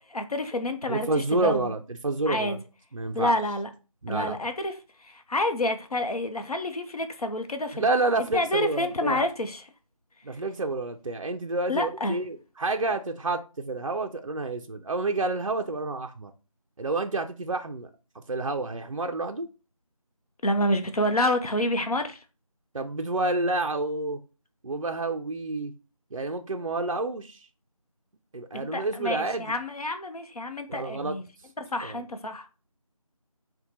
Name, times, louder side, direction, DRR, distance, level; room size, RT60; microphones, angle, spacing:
voice 1, 0.1-1.6 2.3-2.6 3.1-3.7 4.1-4.8 5.0-7.9 8.3-9.7 11.7-12.2 20.4-22.2 28.5-31.2 31.6-32.5, left 1 dB, 85° left, 0.7 m, -28 dB
voice 2, 0.9-2.6 2.9-3.3 4.0-4.4 7.7-9.2 10.2-16.3 16.8-17.9 18.3-19.5 22.7-24.2 24.6-25.7 26.1-27.4 28.3-29.5 30.7-31.2 31.8-32.0, right 2 dB, 60° right, 0.4 m, -29 dB
4.3 x 2.2 x 4.0 m
figure-of-eight pair, 180°, 19 cm